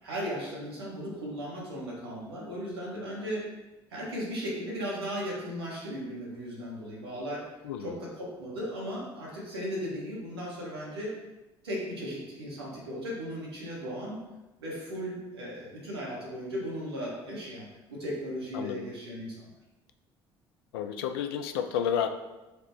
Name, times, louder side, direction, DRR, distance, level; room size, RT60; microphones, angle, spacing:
voice 1, 0.0-3.5 3.9-7.4 7.8-11.1 11.6-14.2 14.6-19.5, equal, 85° right, -5 dB, 1.3 m, -36 dB
voice 2, 20.7-22.1, left 8 dB, 75° left, 8 dB, 0.4 m, -30 dB
4.9 x 2.1 x 4.5 m, 1.1 s
figure-of-eight pair, 50°, 13 cm